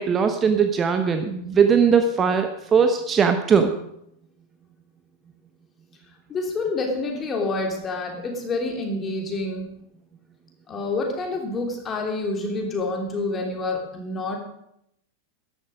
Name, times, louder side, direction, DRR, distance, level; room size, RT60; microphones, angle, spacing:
voice 1, 0.0-3.7, right 6 dB, 25° right, 7 dB, 0.9 m, -20 dB
voice 2, 6.3-9.7 10.7-14.4, left 3 dB, 20° left, 1 dB, 3.2 m, -28 dB
13.5 x 11.0 x 5.1 m, 0.77 s
figure-of-eight pair, 90°, 0 cm